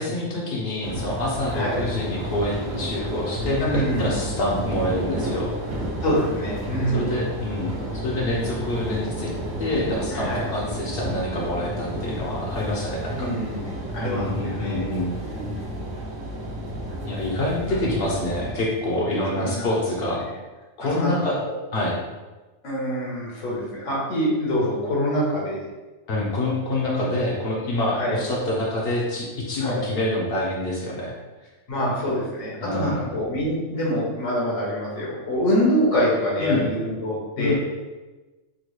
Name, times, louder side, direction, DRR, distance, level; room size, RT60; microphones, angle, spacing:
voice 1, 0.0-5.5 6.9-9.3 9.6-13.3 14.0-15.1 17.0-20.2 20.8-21.4 21.7-22.0 26.1-31.2 32.6-33.0 36.4-36.6 37.4-37.5, left 1 dB, 55° left, -3 dB, 0.8 m, -26 dB
sound 1, 0.8-18.5, equal, 80° right, 1.1 m, -31 dB
voice 2, 1.5-1.8 3.6-4.2 6.0-7.2 10.1-10.5 13.1-14.9 15.2-15.6 17.7-17.8 19.3-19.7 20.9-21.1 21.4-21.6 22.6-25.6 27.9-28.2 29.6-29.9 31.7-37.5, equal, 75° left, -4 dB, 1.3 m, -25 dB
3.7 x 2.2 x 3.1 m, 1.2 s
omnidirectional pair, 1.3 m